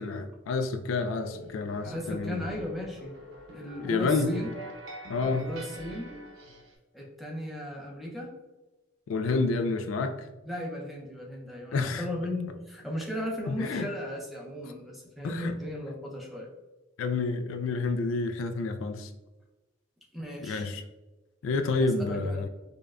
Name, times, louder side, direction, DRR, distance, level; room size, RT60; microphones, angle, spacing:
voice 1, 0.0-2.3 3.8-4.3 5.1-5.5 9.1-10.3 11.7-12.0 13.5-13.9 15.2-15.5 17.0-19.1 20.4-20.8 21.4-22.5, left 3 dB, 75° left, 8 dB, 0.3 m, -29 dB
sound 1, 1.3-6.8, equal, 85° right, 0.8 m, -45 dB
voice 2, 1.8-3.1 3.5-4.5 5.3-6.1 6.9-8.3 10.4-16.5 20.1-20.6 21.8-22.5, left 1 dB, ahead, -3 dB, 0.7 m, -36 dB
5.1 x 2.3 x 2.4 m, 1.1 s
head